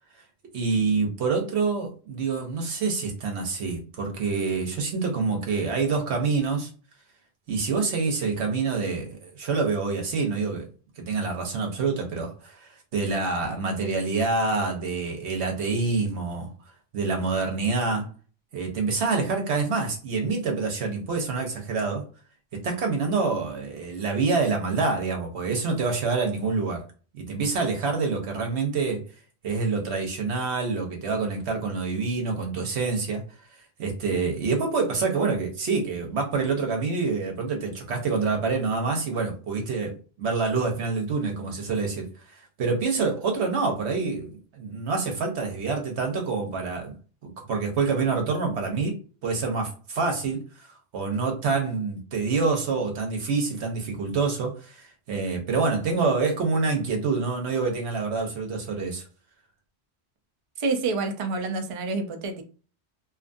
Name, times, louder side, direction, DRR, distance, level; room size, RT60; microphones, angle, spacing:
voice 1, 0.5-6.7 7.5-10.7 11.0-16.5 16.9-18.1 18.5-22.0 22.6-26.8 27.1-29.0 29.4-33.2 33.8-46.9 47.2-50.7 50.9-59.0, right 4 dB, 85° right, 2 dB, 1.1 m, -27 dB
voice 2, 60.6-62.4, right 3 dB, 50° right, 6 dB, 0.4 m, -28 dB
2.7 x 2.4 x 2.5 m, 0.37 s
omnidirectional pair, 1.1 m